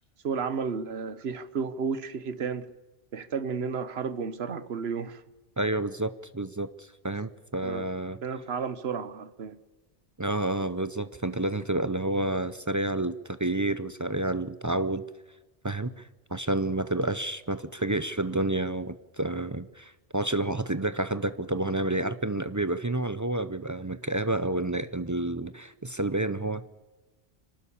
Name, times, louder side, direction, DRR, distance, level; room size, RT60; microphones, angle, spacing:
voice 1, 0.2-2.7 3.1-5.2 7.6-7.8 8.2-9.6, right 5 dB, 60° right, 1.3 m, -32 dB
voice 2, 5.6-8.2 10.2-15.0 15.6-16.0 16.3-26.7, right 2 dB, 25° right, 0.4 m, -29 dB
25.5 x 12.5 x 8.5 m
omnidirectional pair, 1.2 m